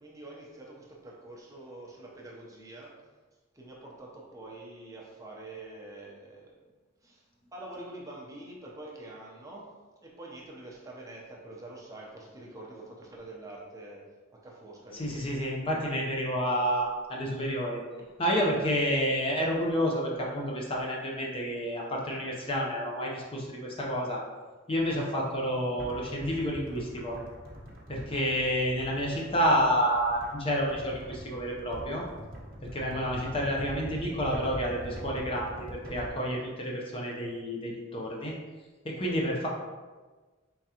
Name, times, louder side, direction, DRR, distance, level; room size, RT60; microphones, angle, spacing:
voice 1, 0.0-2.9 3.5-6.5 7.0-7.2 7.5-9.7 10.0-14.0 14.4-15.0 18.0-18.1, right 2 dB, 15° right, -4 dB, 0.7 m, -45 dB
voice 2, 14.9-17.8 18.2-24.2 24.7-27.2 27.9-32.0 32.7-38.3 38.8-39.5, equal, 30° left, -2 dB, 0.6 m, -29 dB
sound 1, 25.8-36.1, equal, 50° right, 0.9 m, -43 dB
4.5 x 3.6 x 2.8 m, 1.3 s
head